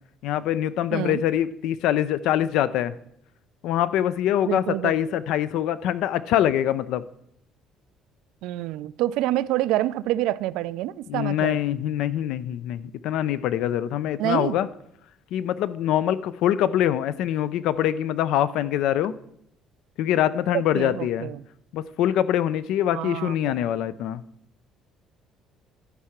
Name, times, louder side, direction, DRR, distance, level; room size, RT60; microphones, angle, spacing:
voice 1, 0.2-3.0 3.6-7.0 11.1-14.7 15.3-19.1 20.0-21.3 21.7-24.2, left 11 dB, 70° left, 16 dB, 0.5 m, -24 dB
voice 2, 4.5-4.9 8.4-11.6 14.2-14.6 20.5-21.4 22.9-23.6, right 15 dB, 80° right, 17 dB, 0.3 m, -27 dB
11.5 x 4.8 x 5.8 m, 0.74 s
cardioid pair, 130°, 0 cm